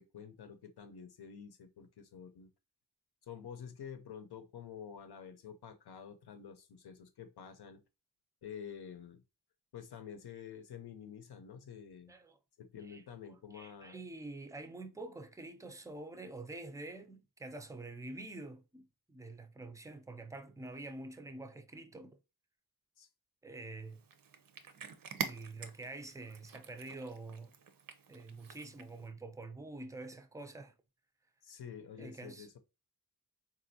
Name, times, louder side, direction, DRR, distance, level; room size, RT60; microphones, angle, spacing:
voice 1, 0.0-2.5 3.3-7.8 8.4-9.2 9.7-12.2 12.6-14.0 23.0-23.1 31.4-32.6, left 7 dB, 75° left, 0.7 m, -49 dB
voice 2, 13.3-22.2 23.4-24.0 25.2-27.5 28.1-30.7 32.0-32.5, right 2 dB, 10° right, 0.4 m, -47 dB
Cat, 23.9-29.1, right 6 dB, 60° right, 0.6 m, -46 dB
4.1 x 2.5 x 2.7 m
wide cardioid pair, 155°, 39 cm